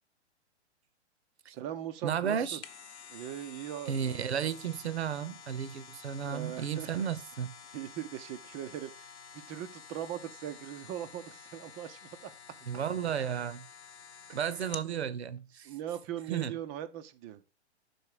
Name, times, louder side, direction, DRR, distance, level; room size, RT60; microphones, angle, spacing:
voice 1, 1.5-2.6 3.1-4.3 6.2-7.0 7.7-12.3 14.3-14.4 15.6-17.4, right 11 dB, 15° right, 0.4 m, -40 dB
voice 2, 2.0-2.6 3.9-7.5 12.7-13.7 14.3-15.7 16.3-16.6, right 8 dB, 70° right, 0.8 m, -33 dB
sound 1, 2.4-14.9 15.4-15.5, left 6 dB, 75° left, 0.9 m, -50 dB
6.3 x 4.3 x 4.8 m
figure-of-eight pair, 115°, 34 cm